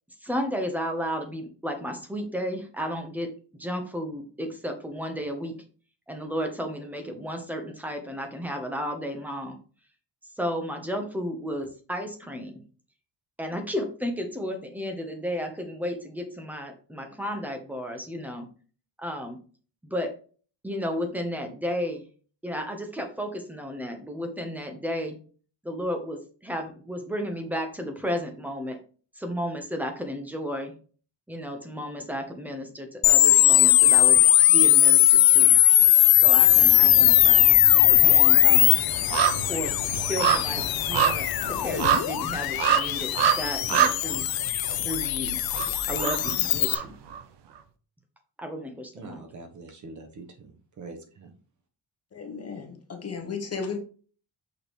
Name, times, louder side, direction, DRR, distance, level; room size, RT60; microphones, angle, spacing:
voice 1, 0.2-5.6 6.1-9.6 10.4-12.6 13.4-18.5 19.0-19.4 19.9-20.2 20.6-22.0 22.4-25.2 25.6-28.8 29.2-30.8 31.3-35.6 36.2-37.5 38.0-38.8 39.2-39.7 40.0-44.3 44.8-45.4 45.9-46.9 48.4-49.2, equal, 5° right, 1.1 m, -33 dB
sound 1, 33.0-46.7, left 14 dB, 55° left, 0.5 m, -19 dB
sound 2, 36.2-36.9 37.2-47.2 47.6-47.7, right 8 dB, 65° right, 1.0 m, -27 dB
sound 3, 36.4-41.8, left 2 dB, 80° left, 1.3 m, -38 dB
voice 2, 48.9-51.3, right 3 dB, 40° right, 1.3 m, -44 dB
voice 3, 52.1-53.8, left 5 dB, 35° left, 1.2 m, -34 dB
6.5 x 5.8 x 3.2 m
cardioid pair, 170°, 44 cm